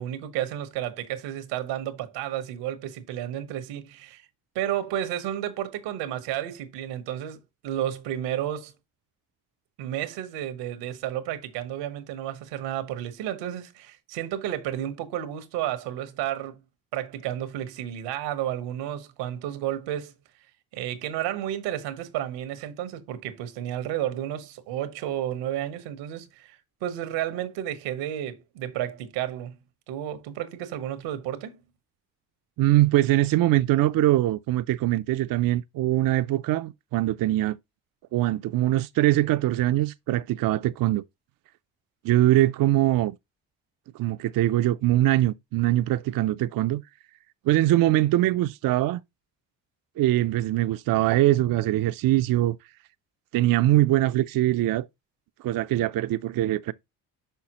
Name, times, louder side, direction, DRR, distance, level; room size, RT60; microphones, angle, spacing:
voice 1, 0.0-4.3 4.5-7.4 7.6-8.7 9.8-16.6 16.9-20.1 20.7-29.6 29.9-31.6, right 11 dB, 90° right, 1.1 m, -32 dB
voice 2, 32.6-37.6 38.1-41.0 42.0-43.2 43.9-46.8 47.4-49.0 50.0-52.6 53.3-54.9 55.4-56.7, right 15 dB, 55° right, 0.5 m, -22 dB
5.8 x 5.7 x 2.9 m
supercardioid pair, 70°, 41 cm